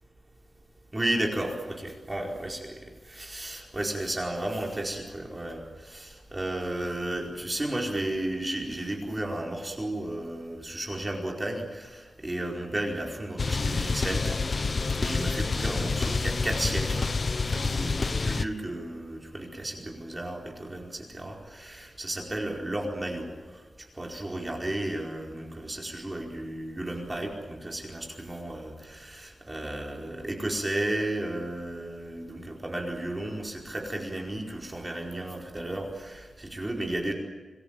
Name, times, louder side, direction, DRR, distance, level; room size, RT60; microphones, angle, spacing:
voice 1, 0.9-2.8 3.1-14.7 15.0-23.3 24.0-37.1, right 1 dB, 15° right, 1 dB, 4.7 m, -33 dB
sound 1, 13.4-18.4, left 4 dB, 40° left, 1.0 m, -28 dB
26.5 x 21.5 x 9.0 m, 1.3 s
wide cardioid pair, 160°, 0 cm